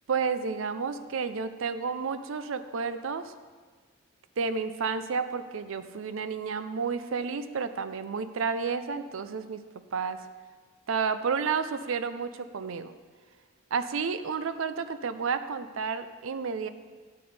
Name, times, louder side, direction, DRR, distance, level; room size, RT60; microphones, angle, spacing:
voice 1, 0.1-3.3 4.4-9.6 9.9-10.2 10.9-12.9 13.7-16.7, right 5 dB, 70° right, 11 dB, 0.5 m, -31 dB
10.5 x 7.9 x 3.4 m, 1.5 s
head